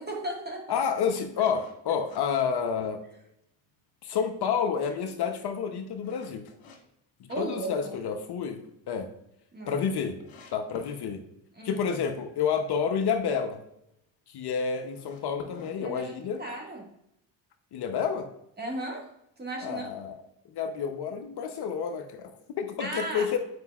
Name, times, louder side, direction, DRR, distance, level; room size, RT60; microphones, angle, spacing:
voice 1, 0.0-0.8 7.3-7.9 9.5-9.9 11.6-11.9 15.8-16.9 18.6-19.1 19.4-19.9 22.8-23.3, right 1 dB, 20° right, -1 dB, 1.8 m, -36 dB
voice 2, 0.7-3.0 4.0-6.4 7.2-8.6 8.9-9.1 9.7-10.2 10.5-11.2 11.6-13.6 14.3-16.4 17.7-18.3 19.6-20.2 20.5-23.4, left 6 dB, 50° left, 5 dB, 0.8 m, -29 dB
sound 1, 1.5-3.2 3.6-3.7 4.3-6.8 7.2-7.9 8.3-8.4 8.7-8.8 9.0-9.1 9.7-9.8 10.2-11.0 14.7-16.6, left 4 dB, 70° left, 1.9 m, -50 dB
8.0 x 5.1 x 2.4 m, 0.80 s
supercardioid pair, 90°, 50 cm